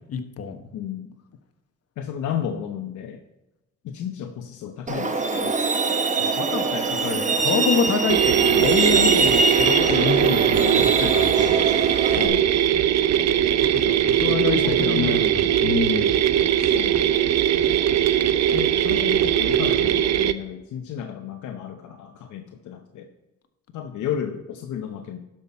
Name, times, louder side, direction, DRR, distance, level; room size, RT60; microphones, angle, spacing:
voice 1, 0.1-0.6 6.4-11.6 13.6-16.2, left 5 dB, 55° left, 7 dB, 1.3 m, -27 dB
voice 2, 0.7-1.2 2.0-3.2 3.8-5.6 12.0-12.6 14.2-15.6 16.6-17.1 18.5-23.1 23.7-25.2, left 9 dB, 75° left, 5 dB, 0.9 m, -33 dB
Truck, 4.9-12.3, right 3 dB, 25° right, 1.0 m, -23 dB
sound 1, 8.1-20.3, right 10 dB, 60° right, 0.6 m, -20 dB
12.0 x 6.0 x 4.2 m, 0.98 s
cardioid pair, 90°, 30 cm